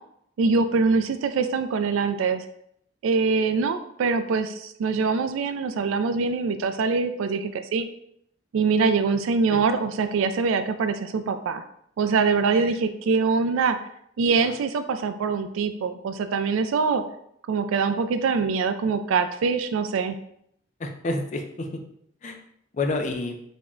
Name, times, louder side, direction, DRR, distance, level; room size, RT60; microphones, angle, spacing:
voice 1, 0.4-2.4 3.0-7.9 8.5-11.6 12.0-13.8 14.2-17.0 17.5-20.2, right 4 dB, 75° right, 9 dB, 0.3 m, -24 dB
voice 2, 20.8-21.8 22.2-22.4 22.7-23.4, left 2 dB, 35° left, 4 dB, 0.3 m, -29 dB
3.4 x 2.1 x 3.6 m, 0.71 s
head